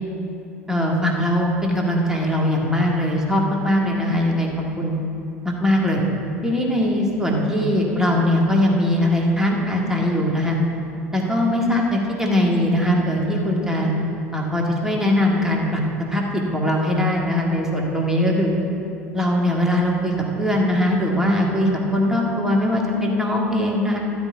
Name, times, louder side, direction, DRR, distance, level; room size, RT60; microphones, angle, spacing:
voice 1, 0.7-4.5 4.8-4.9 5.4-6.0 6.4-10.6 11.1-13.9 14.3-15.8 16.1-18.5 19.1-24.0, left 1 dB, 5° right, -1 dB, 1.8 m, -21 dB
12.5 x 5.2 x 8.5 m, 2.8 s
figure-of-eight pair, 70°, 8 cm